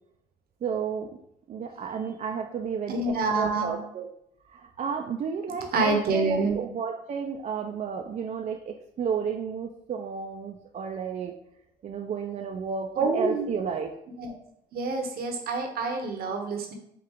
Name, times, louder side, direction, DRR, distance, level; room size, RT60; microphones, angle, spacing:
voice 1, 0.6-1.1 1.5-4.1 4.4-11.4 11.8-13.9, right 6 dB, 40° right, 2 dB, 0.4 m, -32 dB
voice 2, 2.9-3.8 5.7-6.5 13.0-13.4 14.2-14.3 14.7-16.7, right 3 dB, 60° right, 3 dB, 0.9 m, -27 dB
4.5 x 2.4 x 3.5 m, 0.75 s
supercardioid pair, 80°, 17 cm